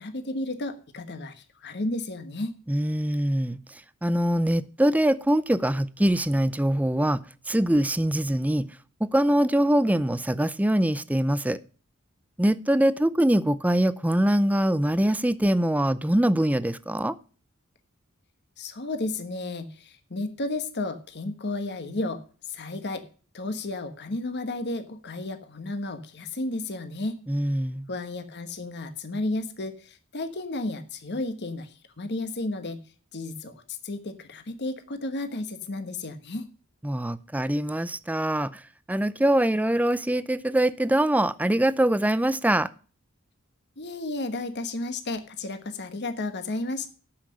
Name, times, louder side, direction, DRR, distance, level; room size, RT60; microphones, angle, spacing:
voice 1, 0.0-2.6 18.6-23.0 23.3-27.2 27.9-32.8 33.1-36.5 43.8-46.9, left 2 dB, 55° left, 9 dB, 1.2 m, -33 dB
voice 2, 2.7-8.7 9.0-11.6 12.4-17.2 27.3-27.8 36.8-38.6 38.9-42.7, right 1 dB, 5° right, 15 dB, 0.5 m, -23 dB
13.0 x 5.8 x 6.2 m, 0.39 s
head